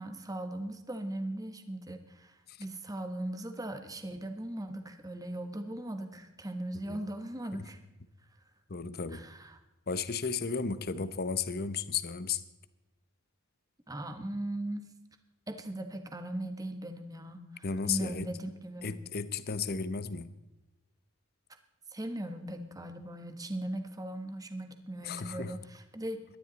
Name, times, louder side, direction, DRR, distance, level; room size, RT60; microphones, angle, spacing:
voice 1, 0.0-7.8 9.1-9.6 13.9-14.9 15.5-18.9 21.9-26.2, right 1 dB, 15° right, 7 dB, 1.3 m, -39 dB
voice 2, 8.7-9.2 9.9-12.4 17.6-18.3 18.8-20.3 25.0-25.6, left 5 dB, 45° left, 13 dB, 0.8 m, -34 dB
19.0 x 12.5 x 4.1 m, 1.0 s
head